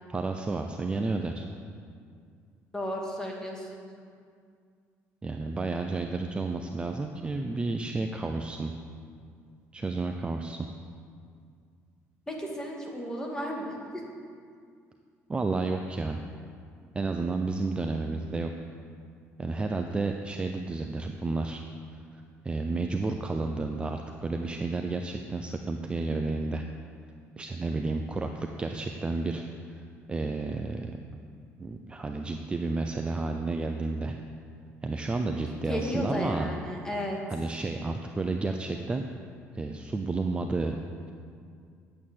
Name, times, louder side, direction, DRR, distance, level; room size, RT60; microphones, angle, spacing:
voice 1, 0.1-1.5 5.2-8.7 9.7-10.7 15.3-16.2 16.9-18.5 19.4-21.6 22.1-26.6 27.4-29.4 29.7-29.8 30.1-30.9 31.6-34.2 34.8-36.5 37.3-39.1 39.5-40.8, right 3 dB, 20° right, 4 dB, 0.6 m, -31 dB
voice 2, 2.7-3.8 12.3-14.0 35.7-37.2, equal, 10° left, -1 dB, 2.3 m, -34 dB
10.5 x 8.6 x 7.5 m, 2.2 s
cardioid pair, 130°, 6 cm